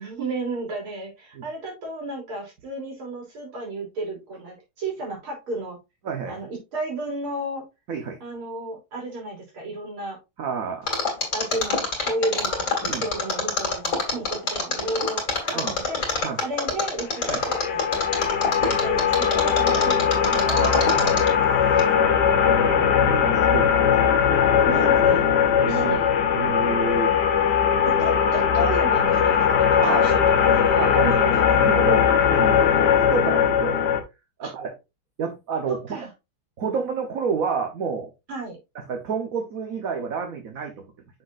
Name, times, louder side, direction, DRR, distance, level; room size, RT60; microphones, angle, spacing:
voice 1, 0.0-5.8 6.3-7.6 8.2-10.2 11.3-17.9 18.6-20.5 20.8-20.9 21.9-22.9 24.6-26.1 27.8-30.2 30.6-31.2 31.5-31.6 34.4-34.5 35.7-36.1 38.3-38.6, right 2 dB, 70° right, 4.1 m, -33 dB
voice 2, 6.0-6.4 7.9-8.2 10.4-10.9 12.8-13.1 14.1-14.2 15.5-15.8 16.2-16.4 17.3-17.4 20.4-21.2 21.8-22.1 22.5-24.1 24.6-24.7 25.6-26.0 26.3-27.1 29.8-30.1 30.8-32.1 32.3-33.9 34.4-34.7 35.2-35.8 36.6-38.1 38.9-40.9, right 5 dB, 50° right, 1.1 m, -29 dB
Mechanisms, 10.9-21.4 21.8-21.9, left 4 dB, 35° left, 2.3 m, -25 dB
sound 1, 17.2-34.0, left 7 dB, 60° left, 1.4 m, -20 dB
6.5 x 6.3 x 2.5 m
omnidirectional pair, 2.4 m